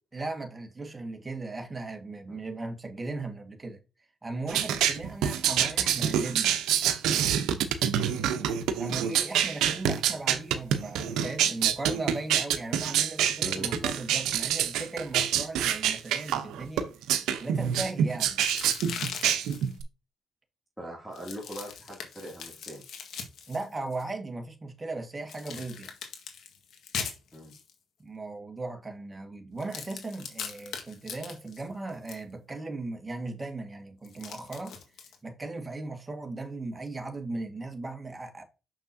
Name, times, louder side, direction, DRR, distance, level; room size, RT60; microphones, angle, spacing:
voice 1, 0.1-3.8 4.2-6.6 8.8-16.9 17.4-18.4 23.5-25.9 28.0-34.8 35.2-38.4, right 2 dB, 20° right, 1.7 m, -37 dB
sound 1, 4.5-19.8, right 9 dB, 90° right, 0.8 m, -26 dB
voice 2, 13.4-13.9 20.8-22.8 27.3-27.5, equal, ahead, 2.6 m, -41 dB
sound 2, 18.4-19.7 21.1-24.0 25.3-27.7 29.6-32.2 34.0-35.1, left 6 dB, 70° left, 1.7 m, -40 dB
6.6 x 5.9 x 2.8 m
cardioid pair, 90°, 0 cm